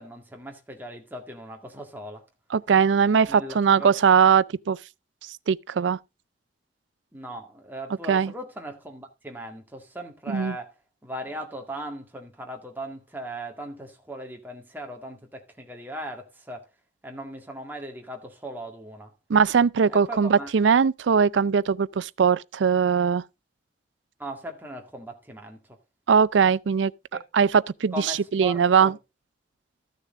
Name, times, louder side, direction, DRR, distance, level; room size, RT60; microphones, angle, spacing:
voice 1, 0.0-2.2 3.3-4.0 7.1-10.7 11.0-16.7 17.0-19.1 19.9-20.5 24.2-25.8 27.1-27.2 27.9-29.0, right 1 dB, 10° right, 2.0 m, -38 dB
voice 2, 2.5-4.8 5.5-6.0 8.1-8.3 10.3-10.5 19.3-23.2 26.1-26.9 27.3-28.9, right 6 dB, 80° right, 0.4 m, -20 dB
14.0 x 6.7 x 3.6 m
head